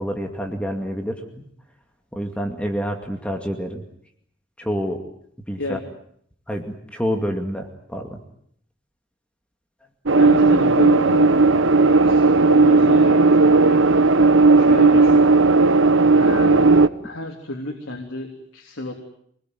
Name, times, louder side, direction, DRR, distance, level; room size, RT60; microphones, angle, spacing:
voice 1, 0.0-1.5 2.1-3.8 4.6-5.0 5.5-5.8 6.5-8.2, equal, 5° left, 3 dB, 2.4 m, -28 dB
sound 1, 10.1-16.9, right 3 dB, 80° right, 1.1 m, -15 dB
voice 2, 10.2-11.3 12.0-13.8 14.5-15.3 16.2-18.9, left 1 dB, 80° left, 2 dB, 3.3 m, -31 dB
26.0 x 20.0 x 9.4 m, 0.68 s
head